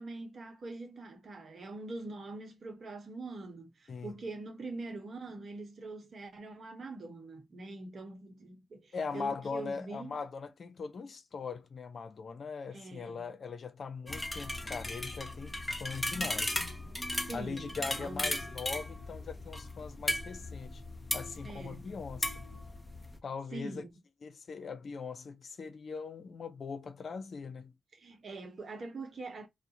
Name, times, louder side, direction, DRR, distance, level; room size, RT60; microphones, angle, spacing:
voice 1, 0.0-10.1 12.7-13.2 17.3-18.3 21.4-21.9 23.5-23.9 27.9-29.5, right 3 dB, 55° right, 0.8 m, -44 dB
voice 2, 8.9-16.6 17.3-20.8 21.1-22.3 23.2-23.8 24.2-27.7, left 5 dB, 60° left, 0.6 m, -40 dB
sound 1, 14.1-23.2, left 1 dB, 15° left, 0.8 m, -37 dB
2.4 x 2.0 x 2.7 m
supercardioid pair, 45°, 0 cm